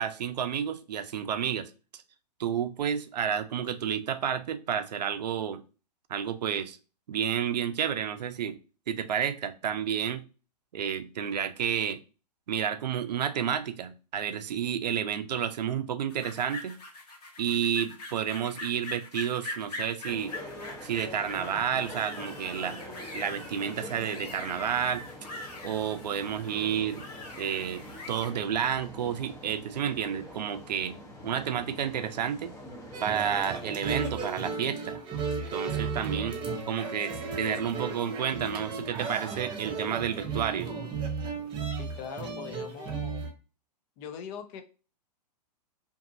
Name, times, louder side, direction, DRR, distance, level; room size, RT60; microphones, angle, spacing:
voice 1, 0.0-2.0 2.4-5.6 6.1-6.8 7.1-8.6 8.9-10.2 10.7-12.0 12.5-16.8 17.4-20.3 20.8-22.8 23.1-25.0 25.6-27.0 27.4-31.0 31.2-32.5 33.0-35.0 35.5-36.4 36.7-40.7, right 8 dB, 80° right, 0.4 m, -30 dB
sound 1, 16.1-28.3, left 2 dB, 70° left, 0.9 m, -43 dB
sound 2, 20.0-33.8, equal, 15° left, 0.8 m, -45 dB
sound 3, 32.9-43.3, right 4 dB, 25° right, 0.6 m, -34 dB
voice 2, 41.8-43.2 44.0-44.6, left 7 dB, 35° left, 0.5 m, -41 dB
2.6 x 2.5 x 2.6 m
hypercardioid pair, 115°, 21 cm